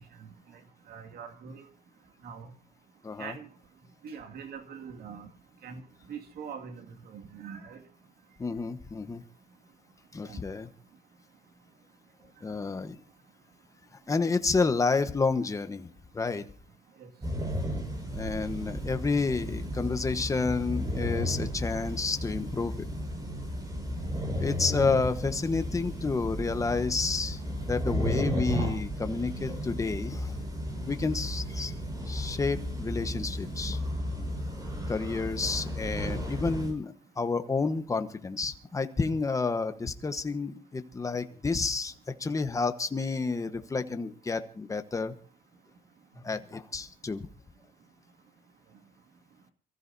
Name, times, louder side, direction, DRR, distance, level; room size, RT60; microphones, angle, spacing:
voice 1, 0.9-1.6 2.2-2.5 3.2-3.5 4.0-5.3 5.6-5.8 6.1-7.8 10.2-10.4 17.0-17.1, right 6 dB, 65° right, 5 dB, 2.2 m, -43 dB
voice 2, 3.0-3.3 8.4-9.2 10.1-10.7 12.4-13.0 14.1-16.4 18.1-22.9 24.4-27.4 27.6-30.4 30.9-31.7 32.1-33.8 34.9-45.1 46.2-47.3, left 4 dB, 20° left, 9 dB, 1.1 m, -30 dB
sound 1, 17.2-36.7, equal, 20° right, 5.4 m, -34 dB
28.0 x 14.5 x 2.7 m, 0.41 s
cardioid pair, 130°, 17 cm